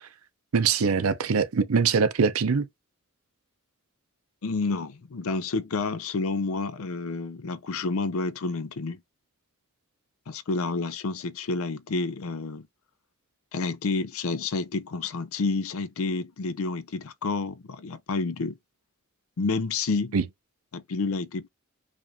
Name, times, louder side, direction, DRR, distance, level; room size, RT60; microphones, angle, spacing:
voice 1, 0.5-2.7 20.1-20.2, right 5 dB, 85° right, 0.6 m, -23 dB
voice 2, 4.4-9.0 10.3-12.7 13.5-18.6 19.4-20.1 20.7-21.5, left 3 dB, 75° left, 0.5 m, -29 dB
4.9 x 2.6 x 2.7 m
head